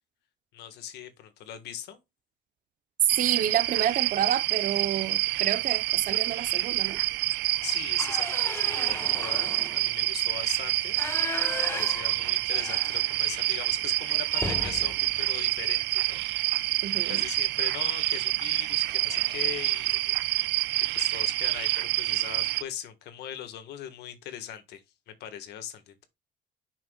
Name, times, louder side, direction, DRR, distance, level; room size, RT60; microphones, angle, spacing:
voice 1, 0.5-2.0 7.6-11.0 11.5-16.7 17.1-19.9 20.9-26.1, left 10 dB, 75° left, 1.6 m, -40 dB
sound 1, 3.1-22.6, right 19 dB, 85° right, 0.4 m, -27 dB
voice 2, 3.2-7.0 16.8-17.2, right 10 dB, 55° right, 0.8 m, -29 dB
sound 2, 6.1-6.5 6.9-7.1 7.4-13.5 13.8-13.9 14.3-16.4 17.8-18.0 18.4-18.6 18.9-19.5, left 3 dB, 15° left, 0.9 m, -38 dB
11.0 x 6.0 x 2.3 m
cardioid pair, 110°, 17 cm